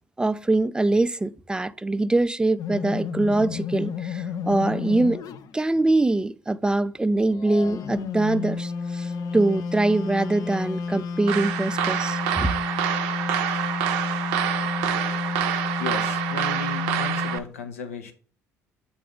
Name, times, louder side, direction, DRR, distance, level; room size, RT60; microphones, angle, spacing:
voice 1, 0.2-5.2 5.5-12.5, right 2 dB, 10° right, 0.4 m, -23 dB
sound 1, 2.6-5.5 7.1-17.4, left 5 dB, 55° left, 0.5 m, -31 dB
sound 2, 11.3-17.4, right 10 dB, 75° right, 0.5 m, -27 dB
voice 2, 15.7-18.1, left 5 dB, 90° left, 0.7 m, -35 dB
7.5 x 2.6 x 4.9 m
hypercardioid pair, 60°, 8 cm